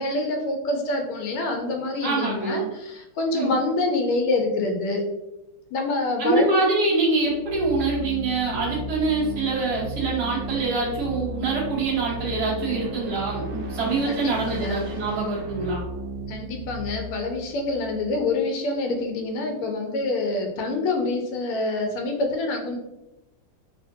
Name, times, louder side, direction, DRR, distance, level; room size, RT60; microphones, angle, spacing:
voice 1, 0.0-5.0 5.7-6.4 14.1-14.8 16.3-22.8, left 2 dB, 85° left, 3 dB, 1.4 m, -26 dB
voice 2, 2.0-2.6 3.3-3.5 6.2-15.8, right 3 dB, 45° right, -7 dB, 1.1 m, -25 dB
sound 1, 7.0-18.8, right 2 dB, 80° right, 1.4 m, -35 dB
3.6 x 2.1 x 2.6 m, 0.95 s
omnidirectional pair, 2.3 m